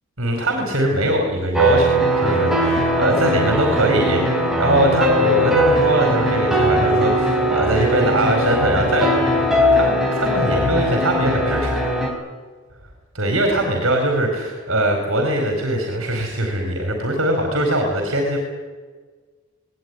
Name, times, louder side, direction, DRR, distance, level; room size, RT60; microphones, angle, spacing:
voice 1, 0.2-11.8 13.1-18.4, right 1 dB, 65° right, 2 dB, 4.6 m, -21 dB
sound 1, 1.5-12.1, equal, ahead, 4.1 m, -19 dB
19.5 x 19.5 x 9.9 m, 1.4 s
head